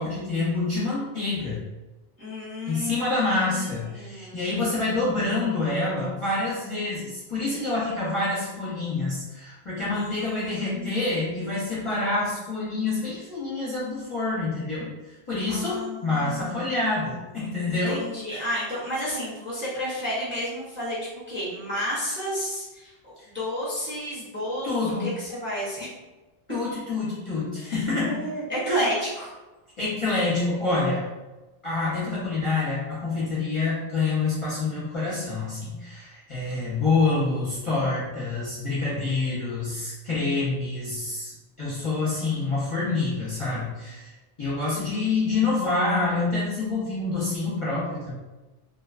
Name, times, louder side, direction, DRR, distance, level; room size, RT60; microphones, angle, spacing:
voice 1, 0.0-1.6 2.7-18.0 18.3-18.5 24.6-25.1 26.5-28.3 28.7-28.8 29.8-31.0 31.6-44.1 44.4-48.1, left 3 dB, 35° left, -9 dB, 0.7 m, -27 dB
voice 2, 2.2-4.6 9.9-11.4 15.5-16.8 17.7-21.0 21.3-25.9 27.6-29.3, equal, 15° right, -8 dB, 0.6 m, -32 dB
2.5 x 2.2 x 2.4 m, 1.1 s
omnidirectional pair, 1.1 m